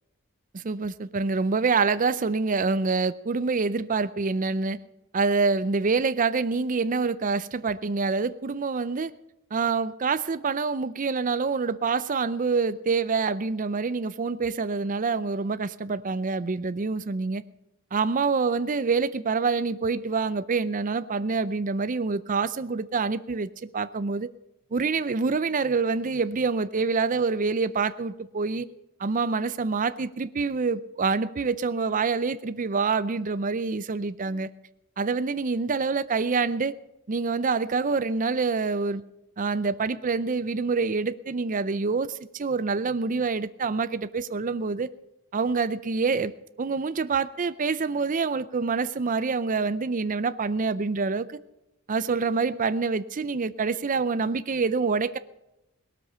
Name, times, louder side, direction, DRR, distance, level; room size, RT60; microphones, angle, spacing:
voice 1, 0.5-4.8 5.1-9.1 9.5-17.4 17.9-24.3 24.7-28.7 29.0-34.5 35.0-36.7 37.1-39.0 39.4-44.9 45.3-46.3 46.6-51.4 51.9-55.2, right 4 dB, 35° right, 0.5 m, -26 dB
18.5 x 13.0 x 5.6 m
head